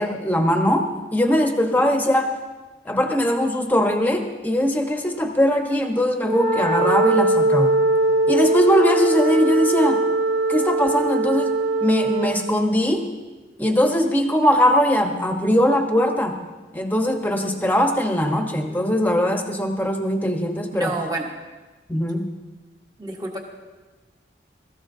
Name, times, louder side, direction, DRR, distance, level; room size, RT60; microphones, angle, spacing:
voice 1, 0.0-2.4 2.8-7.8 8.3-10.0 10.5-11.5 11.8-13.1 13.6-16.4 16.7-20.9 21.9-22.3, equal, 10° left, 3 dB, 1.0 m, -20 dB
Wind instrument woodwind instrument, 6.2-12.5, right 2 dB, 60° right, 3.3 m, -21 dB
voice 2, 20.7-21.3 23.0-23.4, right 2 dB, 20° right, 1 dB, 1.4 m, -28 dB
21.0 x 14.5 x 2.7 m, 1.2 s
head